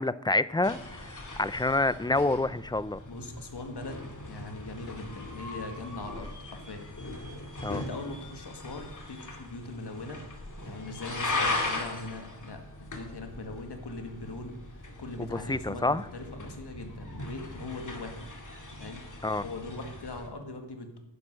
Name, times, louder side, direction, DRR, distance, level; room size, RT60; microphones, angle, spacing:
voice 1, 0.0-3.0 7.6-7.8 15.2-16.1 19.2-19.4, left 2 dB, 10° left, 16 dB, 0.3 m, -28 dB
sound 1, 0.6-20.3, left 2 dB, 45° left, 2.2 m, -39 dB
voice 2, 3.1-4.0 4.3-6.9 7.7-10.2 10.6-18.3 18.7-19.0 19.4-21.0, left 2 dB, 60° left, 5 dB, 2.0 m, -41 dB
10.5 x 10.0 x 6.3 m, 0.88 s
wide cardioid pair, 115°, 44 cm